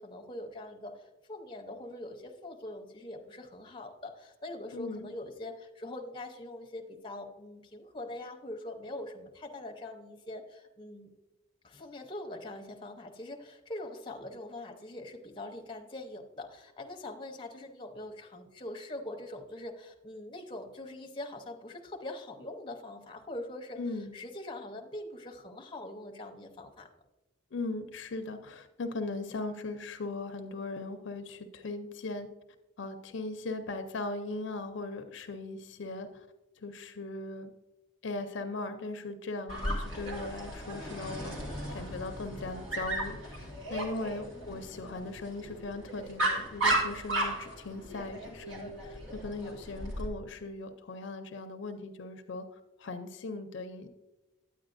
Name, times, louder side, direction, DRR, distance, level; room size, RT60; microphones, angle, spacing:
voice 1, 0.0-11.1 11.6-23.8 24.1-26.9 44.3-45.0, left 1 dB, 25° left, 3 dB, 0.6 m, -43 dB
voice 2, 4.7-5.1 23.8-24.1 27.5-32.3 32.8-36.3 36.6-37.5 38.0-41.4 41.7-53.9, left 3 dB, 60° left, 7 dB, 0.5 m, -39 dB
Dog, 39.5-50.1, right 1 dB, 70° right, 1.9 m, -35 dB
9.3 x 8.7 x 2.5 m, 1.0 s
head